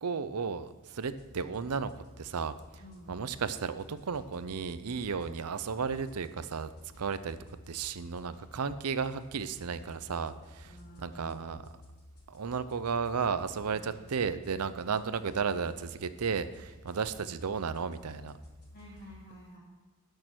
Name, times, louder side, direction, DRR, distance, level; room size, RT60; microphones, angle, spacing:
voice 1, 0.0-1.9 2.2-2.5 3.1-6.7 7.0-7.4 7.7-11.7 12.3-18.4, right 5 dB, 85° right, 13 dB, 0.6 m, -34 dB
sound 1, 0.7-19.1, left 1 dB, 85° left, 3.3 m, -55 dB
voice 2, 2.8-3.1 10.6-11.4 13.7-13.9 18.7-19.6, equal, 40° left, -7 dB, 3.0 m, -50 dB
13.0 x 6.6 x 6.1 m, 1.3 s
head